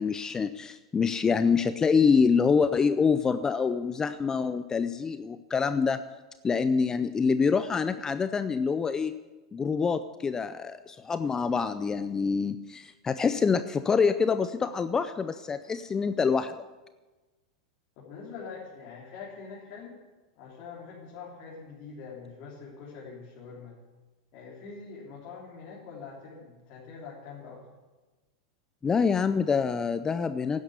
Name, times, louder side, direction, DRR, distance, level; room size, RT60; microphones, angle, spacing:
voice 1, 0.0-6.0 6.4-9.2 9.5-16.5 28.8-30.6, left 5 dB, 15° left, 12 dB, 0.5 m, -26 dB
voice 2, 18.0-19.9 20.4-23.8 24.3-27.6, left 5 dB, 50° left, -5 dB, 3.6 m, -44 dB
11.5 x 9.9 x 8.2 m, 1.2 s
hypercardioid pair, 125°, 3 cm